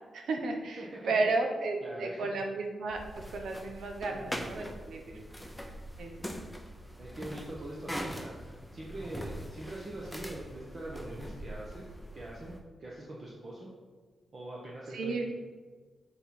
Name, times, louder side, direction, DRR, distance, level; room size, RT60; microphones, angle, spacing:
voice 1, 0.1-5.2 6.0-6.4 14.9-15.3, right 3 dB, 85° right, 3 dB, 1.0 m, -33 dB
voice 2, 0.8-1.1 1.8-2.3 4.1-4.7 5.0-5.2 7.0-11.9 12.1-13.7 14.3-15.3, right 1 dB, 40° right, -4 dB, 1.0 m, -43 dB
sound 1, 2.9-12.6, equal, ahead, 0.6 m, -43 dB
6.9 x 4.5 x 5.4 m, 1.4 s
wide cardioid pair, 155°, 0 cm